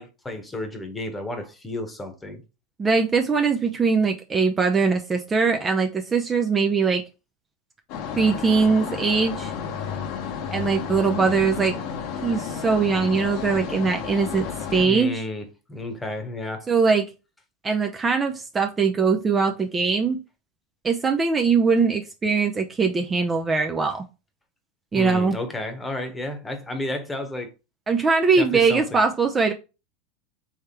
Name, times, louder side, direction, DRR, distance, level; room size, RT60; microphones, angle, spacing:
voice 1, 0.0-2.4 14.8-16.7 24.9-27.5 28.4-29.0, left 1 dB, 15° left, 1.1 m, -32 dB
voice 2, 2.8-7.0 8.2-9.5 10.5-11.8 12.2-15.2 16.7-17.1 17.6-20.2 20.8-24.0 24.9-25.3 27.9-29.5, right 4 dB, 25° right, 0.6 m, -21 dB
sound 1, 7.9-14.9, left 7 dB, 55° left, 0.9 m, -32 dB
3.5 x 3.3 x 4.4 m
hypercardioid pair, 90°, 0 cm